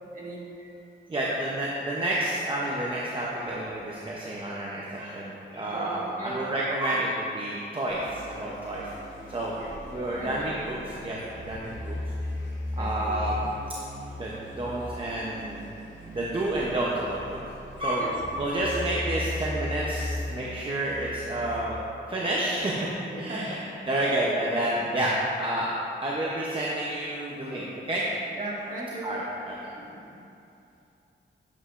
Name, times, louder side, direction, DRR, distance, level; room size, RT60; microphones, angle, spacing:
voice 1, 0.1-0.4 5.7-6.4 9.5-9.7 10.1-10.6 12.8-13.2 18.0-18.1 23.1-23.6 28.3-29.1 29.7-30.2, right 1 dB, 45° right, -6 dB, 1.6 m, -38 dB
voice 2, 1.1-8.9 9.3-9.5 9.9-10.8 11.0-12.0 12.8-13.5 14.2-15.6 16.1-17.4 17.8-21.8 22.1-22.9 23.2-23.6 23.9-25.7 26.0-28.0 29.0-29.6, right 1 dB, 25° right, -5 dB, 0.6 m, -29 dB
sound 1, 7.9-21.6, left 1 dB, 80° left, 1.6 m, -37 dB
8.2 x 7.7 x 2.5 m, 2.7 s
wide cardioid pair, 155°, 20 cm